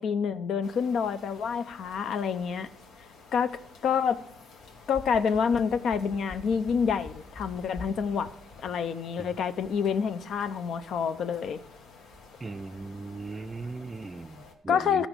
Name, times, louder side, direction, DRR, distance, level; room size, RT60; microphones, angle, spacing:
voice 1, 0.0-2.7 3.3-4.2 4.9-8.3 8.6-11.6 14.7-15.1, left 6 dB, 70° left, 0.5 m, -28 dB
sound 1, 0.6-14.5, left 3 dB, 90° left, 1.2 m, -52 dB
sound 2, 4.6-8.1 8.4-8.5, left 3 dB, 30° left, 1.5 m, -43 dB
voice 2, 12.4-15.1, right 3 dB, 25° right, 0.4 m, -38 dB
13.5 x 4.9 x 5.2 m
cardioid pair, 90°, 0 cm